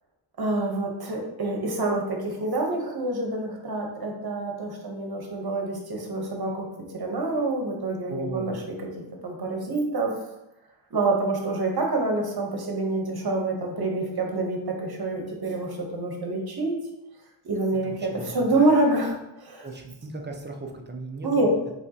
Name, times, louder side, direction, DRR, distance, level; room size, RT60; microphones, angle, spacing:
voice 1, 0.4-6.7 6.9-8.5 9.2-10.1 10.9-16.7 17.4-19.7 21.2-21.5, right 2 dB, 50° right, 1 dB, 1.0 m, -27 dB
voice 2, 8.1-8.6 17.8-18.7 19.6-21.5, right 2 dB, 20° right, 2 dB, 0.6 m, -37 dB
5.2 x 3.2 x 2.8 m, 0.89 s
wide cardioid pair, 120°, 49 cm